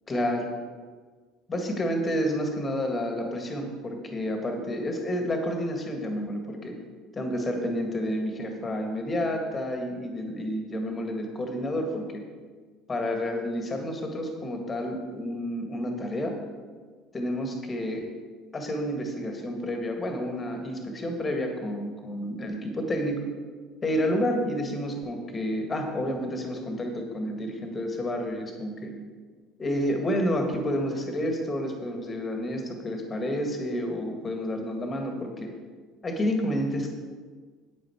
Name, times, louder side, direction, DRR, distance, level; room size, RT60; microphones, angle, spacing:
voice 1, 0.1-0.5 1.5-6.7 7.1-12.2 12.9-16.4 17.1-18.0 18.5-23.2 23.8-28.9 29.6-35.5 36.0-36.9, equal, 25° left, 3 dB, 1.9 m, -30 dB
9.8 x 9.1 x 4.6 m, 1.5 s
figure-of-eight pair, 60°, 0 cm